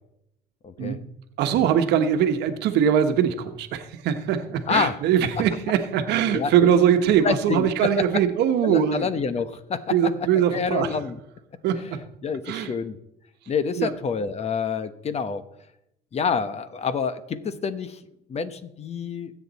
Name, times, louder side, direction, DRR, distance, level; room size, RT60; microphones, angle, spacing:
voice 1, 0.6-1.0 4.7-5.0 6.3-6.7 7.2-8.0 8.6-9.8 10.3-11.2 12.2-13.0 13.5-15.4 16.1-18.0 18.3-19.3, left 5 dB, 40° left, 12 dB, 1.0 m, -27 dB
voice 2, 1.4-9.1 9.9-10.9 11.6-12.0 12.5-12.7 13.8-13.9, right 9 dB, 85° right, 8 dB, 1.2 m, -22 dB
20.5 x 8.3 x 4.2 m, 0.80 s
cardioid pair, 110°, 17 cm